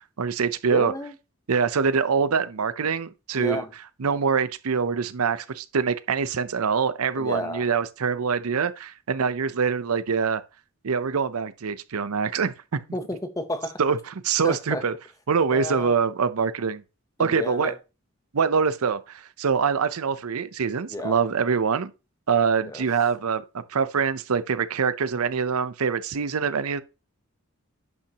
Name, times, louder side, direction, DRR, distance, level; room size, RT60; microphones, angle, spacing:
voice 1, 0.2-0.9 1.5-3.6 4.0-10.4 10.8-12.8 13.8-14.9 15.3-16.8 17.2-17.7 18.3-21.9 22.3-26.8, right 6 dB, 85° right, 0.6 m, -24 dB
voice 2, 0.7-1.1 3.4-3.7 7.1-7.7 12.9-13.8 14.4-14.8 15.5-15.9 17.2-17.7 20.9-21.2 22.7-22.8, left 1 dB, 15° left, 0.8 m, -31 dB
10.5 x 5.8 x 2.9 m
head